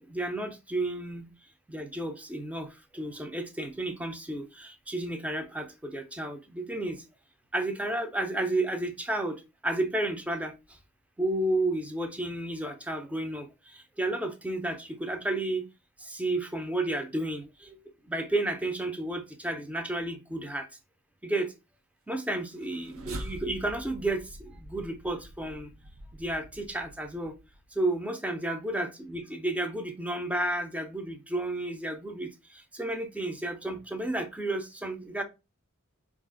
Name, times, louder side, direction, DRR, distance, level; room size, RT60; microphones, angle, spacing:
voice 1, 0.1-1.3 1.7-2.7 2.9-7.0 7.5-10.5 11.2-13.5 14.0-15.6 16.1-17.4 18.1-20.7 21.2-21.5 22.1-24.2 24.6-25.7 26.2-27.3 27.8-32.3 32.7-35.2, right 1 dB, 5° right, 0.5 m, -32 dB
sound 1, 22.4-27.7, right 1 dB, 75° right, 0.6 m, -45 dB
4.5 x 2.4 x 3.6 m
head